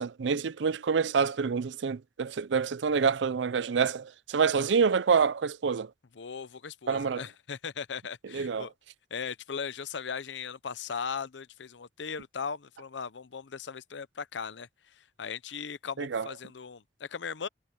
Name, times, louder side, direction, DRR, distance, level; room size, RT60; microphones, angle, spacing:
voice 1, 0.0-5.9 6.9-7.2 8.3-8.7 16.0-16.3, right 5 dB, 85° right, 0.5 m, -27 dB
voice 2, 6.2-8.7 9.1-17.5, left 6 dB, 85° left, 0.7 m, -38 dB
head